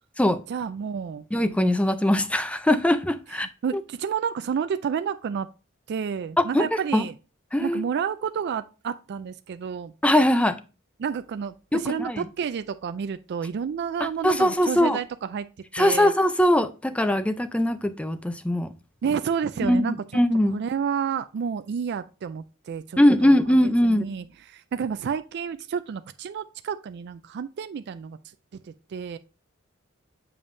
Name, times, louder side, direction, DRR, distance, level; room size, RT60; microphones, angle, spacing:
voice 1, 0.5-1.2 3.6-5.5 5.9-7.1 7.6-9.9 11.0-15.5 15.8-16.1 19.0-20.0 20.5-23.4 23.8-28.2 28.6-29.2, right 7 dB, 55° right, 0.3 m, -30 dB
voice 2, 1.3-3.5 3.7-3.8 6.4-6.7 6.9-7.0 7.5-7.8 10.0-10.6 11.7-12.2 14.2-15.0 15.7-18.7 19.6-20.6 23.0-24.1, left 1 dB, 5° left, 0.5 m, -21 dB
7.0 x 5.2 x 2.6 m
head